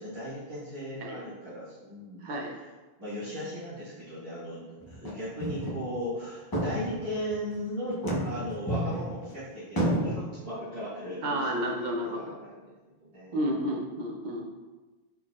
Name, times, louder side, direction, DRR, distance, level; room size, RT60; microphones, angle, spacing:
voice 1, 0.0-2.6 3.0-11.6 12.0-12.6 13.0-13.7, equal, 30° right, -12 dB, 1.2 m, -37 dB
voice 2, 2.2-2.5 3.3-3.4 11.2-12.4 13.3-14.5, equal, 55° right, 0 dB, 0.6 m, -31 dB
sound 1, 4.8-5.1 5.4-5.8 6.2-6.3 6.5-7.3 7.9-9.3 9.8-10.1, right 1 dB, 25° left, 0.6 m, -30 dB
4.1 x 3.9 x 2.3 m, 1.2 s
omnidirectional pair, 1.1 m